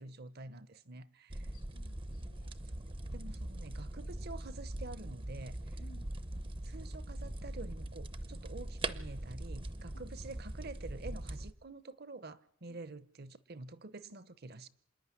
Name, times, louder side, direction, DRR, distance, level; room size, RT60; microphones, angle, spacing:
voice 1, 0.0-1.5 2.7-5.8 6.6-14.7, right 3 dB, 50° right, 0.9 m, -48 dB
sound 1, 1.3-11.5, right 1 dB, 25° right, 0.7 m, -42 dB
voice 2, 1.4-2.5 5.8-6.1 9.9-10.1 12.7-12.8, left 2 dB, 90° left, 2.3 m, -60 dB
27.0 x 9.9 x 9.8 m
head